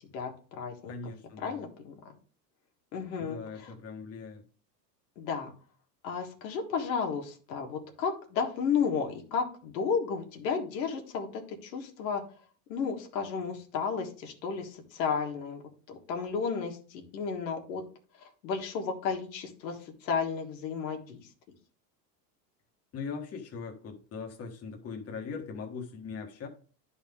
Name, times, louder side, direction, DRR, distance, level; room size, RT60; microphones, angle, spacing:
voice 1, 0.1-1.0 1.4-1.9 2.9-3.7 5.2-5.5 6.0-12.2 12.7-15.6 15.9-17.8 18.2-21.2, left 6 dB, 90° left, 3 dB, 1.7 m, -33 dB
voice 2, 0.9-1.7 3.2-4.4 22.9-26.5, left 5 dB, 30° left, 2 dB, 1.4 m, -40 dB
10.5 x 4.1 x 3.6 m, 0.40 s
supercardioid pair, 135°, 49 cm